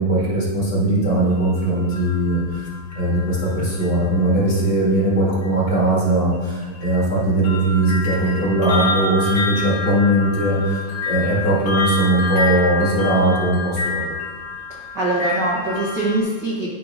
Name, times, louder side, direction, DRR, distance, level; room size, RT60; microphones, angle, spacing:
voice 1, 0.0-2.7 2.9-14.1, right 1 dB, 45° left, -7 dB, 2.6 m, -19 dB
sound 1, 1.3-4.4 5.4-5.6 6.3-16.2, left 3 dB, 65° left, 2.7 m, -28 dB
voice 2, 14.7-16.7, right 2 dB, 60° right, -6 dB, 1.2 m, -23 dB
12.0 x 5.5 x 2.6 m, 1.5 s
omnidirectional pair, 3.3 m